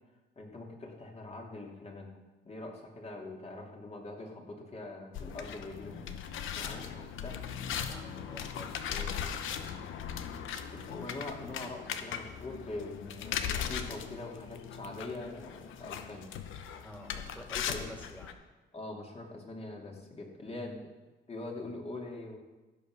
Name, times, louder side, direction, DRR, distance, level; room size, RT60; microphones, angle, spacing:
voice 1, 0.4-2.1 2.4-6.1 6.4-7.4 10.7-16.3 17.7-17.8 18.7-20.9 21.3-22.4, left 2 dB, 30° left, 0 dB, 2.9 m, -43 dB
sound 1, 5.1-18.3, left 8 dB, 80° left, 0.9 m, -39 dB
voice 2, 7.8-10.1 16.8-18.4 20.4-20.8, equal, 10° left, 1 dB, 2.8 m, -50 dB
15.0 x 5.8 x 6.4 m, 1.2 s
cardioid pair, 90°, 20 cm